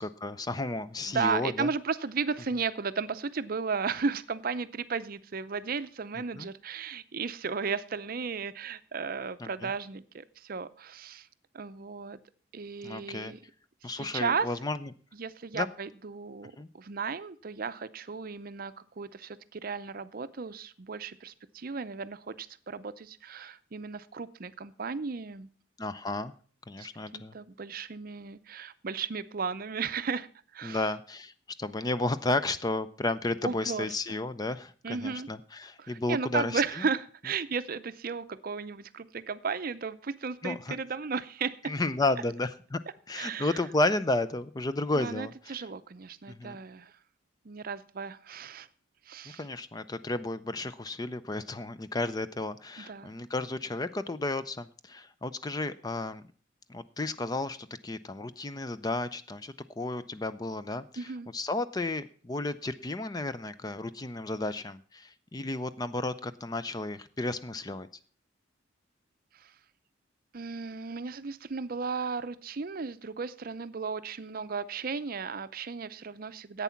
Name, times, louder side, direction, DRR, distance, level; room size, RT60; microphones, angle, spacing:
voice 1, 0.0-1.7 6.3-6.5 9.4-9.7 12.8-13.3 13.8-14.8 15.5-15.7 16.6-16.7 25.8-26.3 26.7-27.3 30.6-31.3 31.6-36.6 40.4-40.8 41.7-42.8 43.1-45.6 46.3-46.6 49.4-56.2 56.7-61.1 61.3-67.9, left 2 dB, 20° left, 13 dB, 0.4 m, -32 dB
voice 2, 1.1-11.3 11.5-12.2 12.5-13.4 13.8-14.5 15.1-25.5 26.8-26.9 27.1-30.3 30.5-30.9 33.4-34.2 34.8-35.3 35.8-41.7 43.1-43.6 45.0-46.9 47.4-48.7 49.1-49.4 52.8-53.1 61.0-61.3 69.4-69.5 70.3-76.6, right 5 dB, 45° right, 13 dB, 0.5 m, -35 dB
11.0 x 8.3 x 5.7 m, 0.43 s
head